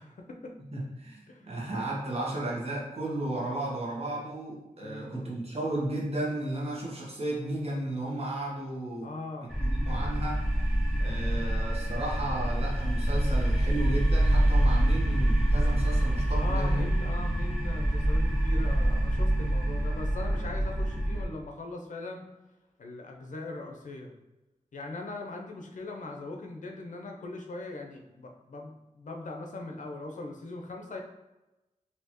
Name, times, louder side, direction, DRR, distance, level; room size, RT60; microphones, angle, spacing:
voice 1, 0.0-0.5 1.3-1.6 4.8-5.3 9.0-9.5 16.4-22.3 22.8-24.1 24.7-31.0, left 2 dB, 70° left, 2 dB, 0.7 m, -40 dB
voice 2, 0.7-9.1 9.4-10.6 11.0-16.8, right 1 dB, 50° right, -4 dB, 1.3 m, -34 dB
sound 1, 9.5-21.2, right 1 dB, ahead, 1.0 m, -26 dB
4.3 x 2.8 x 3.0 m, 1.0 s
wide cardioid pair, 80°, 13 cm